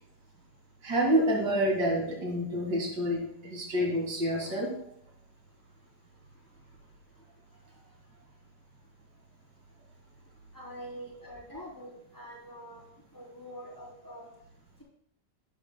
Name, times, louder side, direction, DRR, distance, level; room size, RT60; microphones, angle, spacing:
voice 1, 0.8-4.7, equal, 75° right, 0 dB, 2.6 m, -28 dB
voice 2, 10.5-12.8 13.1-14.3, equal, 10° left, -5 dB, 3.1 m, -45 dB
11.5 x 8.9 x 2.2 m, 0.70 s
omnidirectional pair, 1.9 m